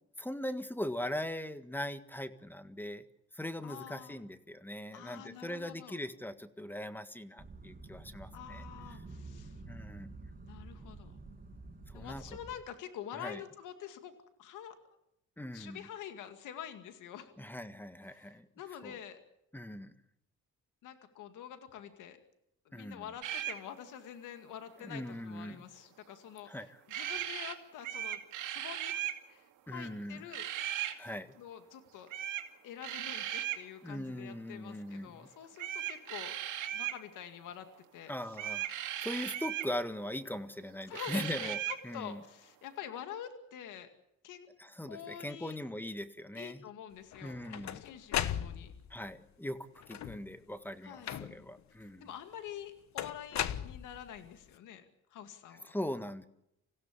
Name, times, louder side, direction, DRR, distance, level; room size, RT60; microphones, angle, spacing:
voice 1, 0.2-3.0 3.3-8.6 8.9-9.0 9.7-10.2 11.9-12.2 13.1-13.4 15.4-15.9 17.4-18.5 18.8-19.0 19.5-19.9 22.7-23.1 24.8-25.6 26.5-26.7 29.7-30.3 30.9-31.3 33.8-35.3 38.1-38.7 39.0-41.6 41.8-42.2 44.6-46.6 47.2-47.8 48.9-49.6 49.9-52.1 55.7-56.3, left 1 dB, 5° left, 10 dB, 1.7 m, -40 dB
voice 2, 3.6-4.2 4.9-6.0 8.3-9.6 10.5-11.2 11.9-14.1 14.4-14.7 15.5-17.3 18.1-19.2 20.8-22.2 22.7-29.0 29.3-30.5 31.4-32.1 32.6-38.1 40.9-43.9 44.2-44.5 44.9-45.6 46.3-47.4 47.7-48.7 50.8-51.2 52.0-54.9 55.1-55.7, left 9 dB, 90° left, 8 dB, 2.2 m, -47 dB
sound 1, 7.4-12.6, right 3 dB, 30° right, 5.9 m, -49 dB
sound 2, 23.2-23.6 26.9-27.5 27.8-29.2 30.3-31.0 32.1-32.5 32.8-33.6 35.6-37.0 38.3-39.7 40.9-41.8, right 12 dB, 85° right, 2.4 m, -37 dB
sound 3, 47.1-49.0 49.8-50.3 51.0-51.6 53.0-54.3, left 10 dB, 65° left, 1.2 m, -37 dB
26.5 x 16.5 x 8.4 m, 0.81 s
cardioid pair, 90°, 30 cm